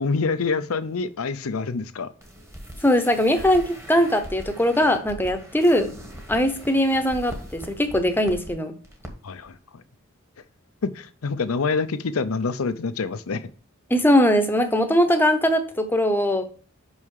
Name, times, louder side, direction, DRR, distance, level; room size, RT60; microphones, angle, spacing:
voice 1, 0.0-2.1 9.2-9.6 10.8-13.4, left 4 dB, 90° left, 12 dB, 0.6 m, -26 dB
sound 1, 2.2-8.5 8.8-9.1 9.4-9.5, equal, 15° right, 1.2 m, -41 dB
voice 2, 2.8-5.9 6.3-8.8 13.9-16.4, equal, 10° left, 7 dB, 0.8 m, -20 dB
5.5 x 5.5 x 4.8 m, 0.42 s
head